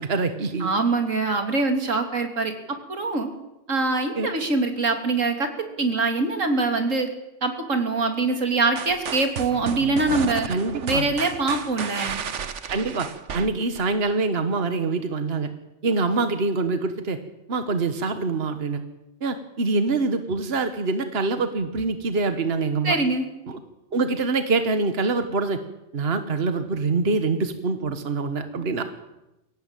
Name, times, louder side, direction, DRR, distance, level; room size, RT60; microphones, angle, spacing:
voice 1, 0.0-0.7 4.2-4.3 10.5-11.0 12.7-13.1 13.3-15.5 15.8-17.2 17.5-18.8 19.2-23.0 23.5-23.6 23.9-25.6 25.9-28.8, right 3 dB, 55° right, 9 dB, 1.6 m, -25 dB
voice 2, 0.6-3.3 3.7-7.1 7.4-10.5 10.8-12.2 22.8-23.3, right 3 dB, 90° right, 5 dB, 3.3 m, -24 dB
sound 1, 8.8-14.0, right 7 dB, 70° right, 1.4 m, -33 dB
23.0 x 17.0 x 9.1 m, 0.94 s
omnidirectional pair, 1.3 m